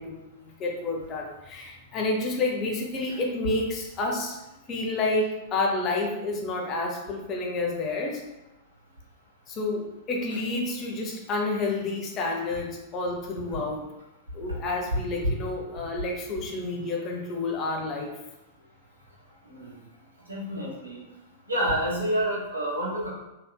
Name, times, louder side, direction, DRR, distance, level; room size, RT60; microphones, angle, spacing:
voice 1, 0.0-4.4 4.7-8.2 9.5-13.9 14.3-18.1, left 2 dB, 30° left, 0 dB, 0.6 m, -29 dB
voice 2, 20.3-21.0 21.5-23.1, right 1 dB, 75° right, -4 dB, 1.1 m, -28 dB
3.4 x 2.9 x 2.2 m, 0.98 s
figure-of-eight pair, 95°, 0 cm